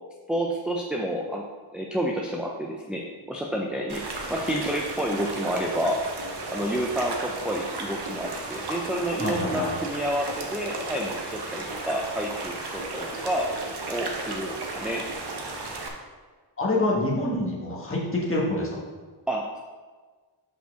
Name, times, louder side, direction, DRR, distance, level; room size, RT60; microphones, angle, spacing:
voice 1, 0.3-1.4 1.7-6.1 6.5-13.5 13.9-15.0 19.3-19.6, equal, ahead, -1 dB, 0.4 m, -29 dB
sound 1, 3.9-15.9, right 2 dB, 55° right, 1.0 m, -34 dB
voice 2, 9.2-9.7 16.6-18.8, left 2 dB, 25° left, -4 dB, 1.5 m, -26 dB
5.4 x 4.5 x 6.2 m, 1.4 s
wide cardioid pair, 170°, 48 cm